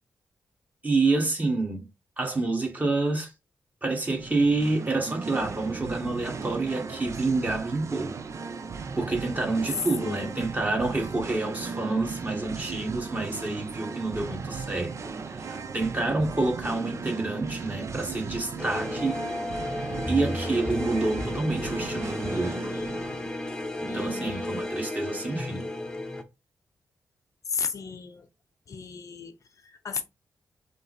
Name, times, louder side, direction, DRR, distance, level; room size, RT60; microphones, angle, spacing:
voice 1, 0.8-1.9 2.2-3.3 3.8-8.2 9.0-15.1 15.4-19.2 20.1-22.7 23.8-25.7, right 3 dB, 25° right, 1.5 m, -28 dB
Singing, 4.1-23.3, right 5 dB, 50° right, 0.5 m, -37 dB
voice 2, 10.0-10.4 22.3-23.0 23.9-24.6 27.5-28.3 28.7-30.0, left 5 dB, 55° left, 0.6 m, -36 dB
sound 1, 18.6-26.2, left 1 dB, 10° left, 0.7 m, -33 dB
5.5 x 2.0 x 4.0 m
cardioid pair, 95°, 6 cm